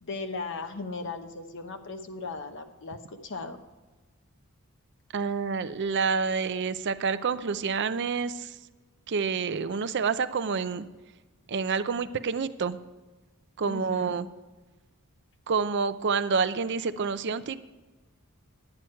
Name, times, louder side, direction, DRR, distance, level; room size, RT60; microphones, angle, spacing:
voice 1, 0.0-3.6 13.6-14.1, left 3 dB, 55° left, 6 dB, 1.0 m, -37 dB
voice 2, 5.1-8.6 9.1-10.8 11.5-12.8 13.6-14.3 15.5-17.6, right 5 dB, 50° right, 13 dB, 0.5 m, -28 dB
11.0 x 9.2 x 4.4 m, 1.2 s
head